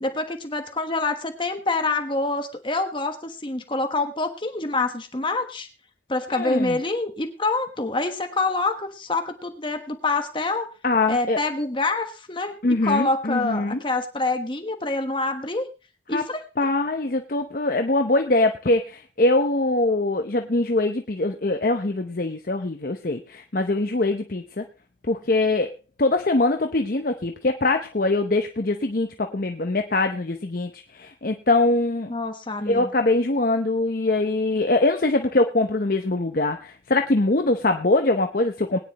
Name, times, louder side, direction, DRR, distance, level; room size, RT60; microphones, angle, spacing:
voice 1, 0.0-5.7 6.1-10.7 11.1-12.6 12.8-15.7 16.1-16.4 32.1-32.9, left 3 dB, 25° left, 6 dB, 1.2 m, -26 dB
voice 2, 6.3-6.8 10.8-11.4 12.6-13.8 16.1-16.2 16.6-24.6 25.1-32.1 32.7-38.8, left 2 dB, 50° left, 6 dB, 0.8 m, -23 dB
20.5 x 10.0 x 3.0 m, 0.30 s
head